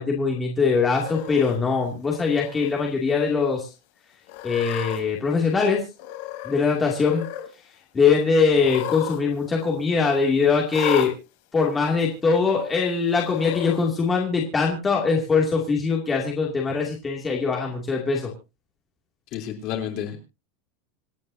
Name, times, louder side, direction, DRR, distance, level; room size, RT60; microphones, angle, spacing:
voice 1, 0.0-3.7 4.4-5.8 6.4-7.2 7.9-11.1 11.5-18.3, left 5 dB, 10° left, -1 dB, 2.5 m, -22 dB
Cat, 0.9-1.5 2.3-2.7 3.1-3.2 4.3-5.0 6.0-6.6 6.9-7.5 8.5-9.2 9.5-9.6 10.7-11.1 12.0-12.1 13.2-13.8, left 12 dB, 55° left, 3.0 m, -33 dB
voice 2, 19.3-20.2, left 9 dB, 40° left, 3 dB, 3.5 m, -30 dB
26.5 x 9.5 x 2.8 m, 0.29 s
supercardioid pair, 180°, 0 cm